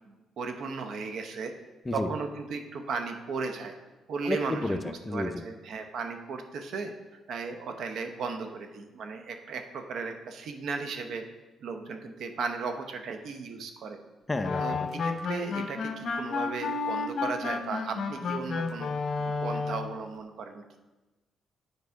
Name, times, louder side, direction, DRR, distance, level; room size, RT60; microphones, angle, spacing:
voice 1, 0.1-1.5 1.9-3.7 4.1-6.9 7.3-11.2 11.6-14.0 14.6-18.9 19.2-20.6, right 4 dB, 70° right, 6 dB, 0.8 m, -36 dB
voice 2, 4.3-5.3 14.3-14.9, left 2 dB, 20° left, 8 dB, 0.6 m, -31 dB
sound 1, 14.4-20.0, left 4 dB, 55° left, 0.8 m, -31 dB
9.6 x 4.7 x 4.7 m, 1.2 s
cardioid pair, 90°, 0 cm